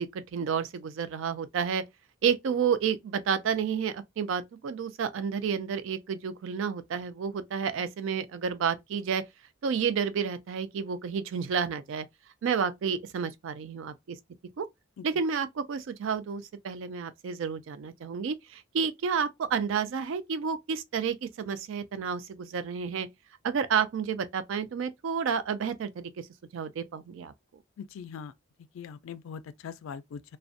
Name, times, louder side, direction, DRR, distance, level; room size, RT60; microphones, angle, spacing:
voice 1, 0.0-1.8 2.2-9.2 9.6-12.1 12.4-14.2 14.6-14.7 15.0-23.1 23.4-26.3 26.5-27.3, right 6 dB, 65° right, 0.3 m, -30 dB
voice 2, 27.8-28.3 28.7-30.4, left 6 dB, 75° left, 0.3 m, -41 dB
2.4 x 2.1 x 2.5 m
head